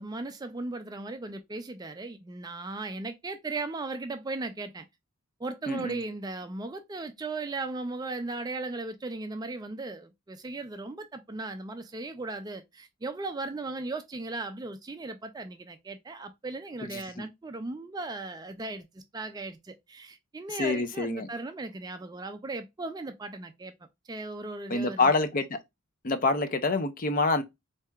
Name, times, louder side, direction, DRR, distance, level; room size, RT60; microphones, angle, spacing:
voice 1, 0.0-4.9 5.4-23.7 24.0-25.2, right 3 dB, 15° right, 0.3 m, -37 dB
voice 2, 5.7-6.0 16.9-17.3 20.6-21.3 24.7-25.6 26.0-27.4, left 3 dB, 40° left, 0.5 m, -27 dB
4.5 x 2.7 x 2.3 m
head